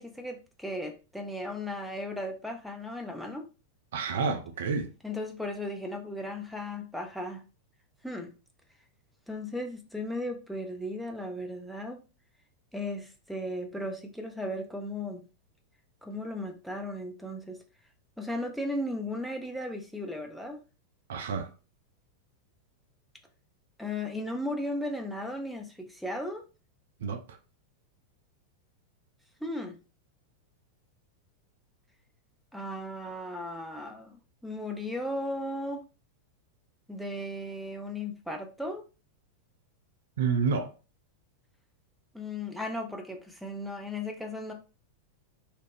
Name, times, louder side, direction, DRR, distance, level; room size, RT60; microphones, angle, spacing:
voice 1, 0.0-3.4 5.0-7.4 8.0-8.3 9.3-12.0 12.7-15.2 16.0-17.6 18.2-20.6 23.8-26.4 29.4-29.8 32.5-35.8 36.9-38.8 42.1-44.5, left 1 dB, ahead, 0.5 m, -36 dB
voice 2, 3.9-4.9 21.1-21.5 27.0-27.2 40.2-40.7, right 5 dB, 60° right, 0.4 m, -29 dB
2.4 x 2.0 x 3.2 m
figure-of-eight pair, 90°, 0 cm